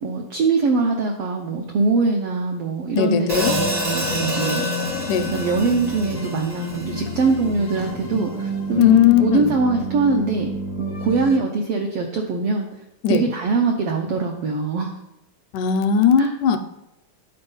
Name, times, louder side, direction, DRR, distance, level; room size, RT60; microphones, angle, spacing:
voice 1, 0.0-4.7 5.3-10.5 10.8-12.7 13.1-14.9 16.2-16.3, right 4 dB, 85° right, 2 dB, 1.3 m, -22 dB
voice 2, 3.0-3.5 5.1-5.3 8.8-9.6 13.0-13.3 15.5-16.6, left 8 dB, 80° left, 9 dB, 2.0 m, -17 dB
Hi-hat, 3.3-7.6, left 1 dB, 25° right, 0.5 m, -28 dB
sound 1, 3.4-11.4, equal, 55° left, 0.7 m, -30 dB
9.6 x 4.4 x 5.4 m, 0.89 s
omnidirectional pair, 3.7 m